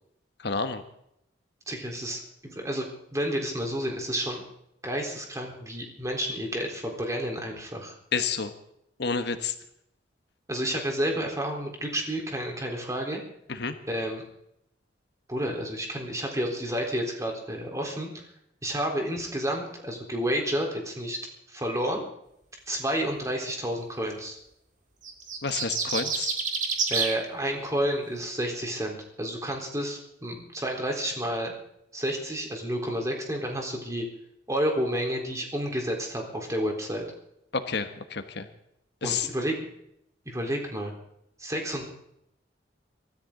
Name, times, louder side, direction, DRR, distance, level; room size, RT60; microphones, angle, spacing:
voice 1, 0.4-0.8 8.1-8.5 9.0-9.5 13.5-13.7 25.4-26.4 37.5-38.5 39.0-39.3, left 5 dB, 65° left, 8 dB, 1.3 m, -29 dB
voice 2, 1.7-4.4 4.8-8.0 10.5-13.2 13.9-14.2 15.3-18.2 18.6-21.2 21.5-22.0 22.7-24.4 26.9-31.5 31.9-34.1 34.5-37.0 39.0-39.5 40.3-40.9 41.4-41.9, equal, 20° right, 1 dB, 3.9 m, -30 dB
sound 1, 25.0-27.2, right 5 dB, 45° right, 2.7 m, -28 dB
24.0 x 13.5 x 3.9 m, 0.76 s
head